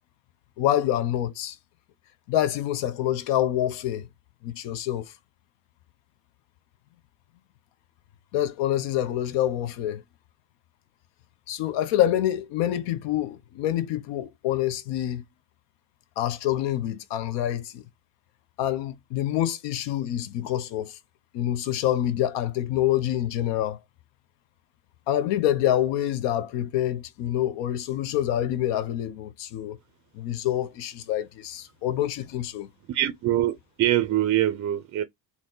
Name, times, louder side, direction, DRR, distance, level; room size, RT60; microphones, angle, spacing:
voice 1, 0.6-1.6 2.3-4.1 4.4-5.1 8.3-10.0 11.5-15.2 16.2-17.8 18.6-21.0 21.3-23.8 25.1-29.8 30.1-32.7, left 12 dB, 85° left, 0.8 m, -26 dB
voice 2, 32.9-35.0, right 13 dB, 35° right, 0.4 m, -24 dB
4.2 x 3.0 x 3.8 m
cardioid pair, 170°, 42 cm